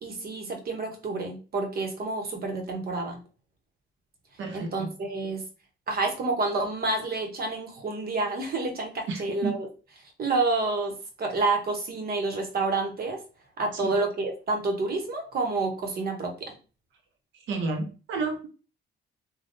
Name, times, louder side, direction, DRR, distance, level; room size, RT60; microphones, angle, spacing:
voice 1, 0.0-3.2 4.5-5.4 5.9-9.7 10.2-13.2 13.6-16.5, right 3 dB, 50° right, 3 dB, 1.0 m, -29 dB
voice 2, 4.4-4.9 9.1-9.5 13.8-13.9 17.5-18.5, right 4 dB, 75° right, 4 dB, 0.7 m, -31 dB
3.4 x 2.3 x 2.6 m, 0.35 s
cardioid pair, 90°, 20 cm